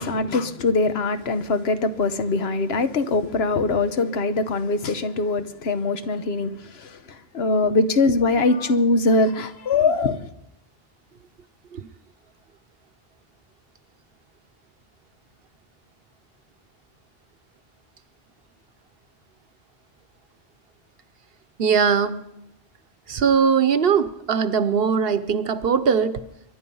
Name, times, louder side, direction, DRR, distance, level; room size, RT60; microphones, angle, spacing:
voice 1, 0.0-10.3, left 3 dB, 75° left, 1.2 m, -22 dB
voice 2, 21.6-22.2 23.1-26.2, right 6 dB, 65° right, 1.1 m, -20 dB
23.5 x 10.5 x 5.5 m
omnidirectional pair, 1.1 m